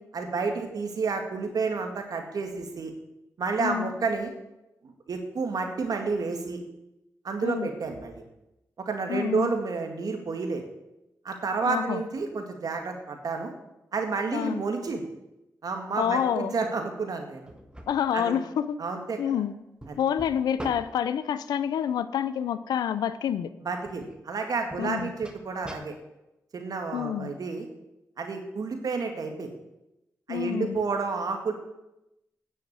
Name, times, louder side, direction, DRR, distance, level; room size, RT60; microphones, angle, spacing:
voice 1, 0.1-2.9 3.4-4.3 4.8-6.6 7.2-8.1 8.9-10.6 11.2-13.5 13.9-15.0 15.6-17.5 18.1-18.4 18.8-19.2 19.9-20.0 23.6-25.9 26.5-27.7 28.2-29.5 30.3-31.5, right 4 dB, 70° right, 4 dB, 1.9 m, -30 dB
voice 2, 3.6-3.9 7.4-7.7 9.1-9.5 11.7-12.0 14.3-14.6 16.0-16.5 17.9-18.8 19.2-19.5 20.0-23.5 24.8-25.1 26.9-27.3 30.3-30.8, left 9 dB, 90° left, 15 dB, 0.6 m, -28 dB
sound 1, 17.5-18.0 19.8-20.9 23.9-24.2 24.7-25.9, right 1 dB, 15° right, 1.6 m, -41 dB
9.9 x 6.5 x 8.6 m, 0.91 s
supercardioid pair, 45°, 7 cm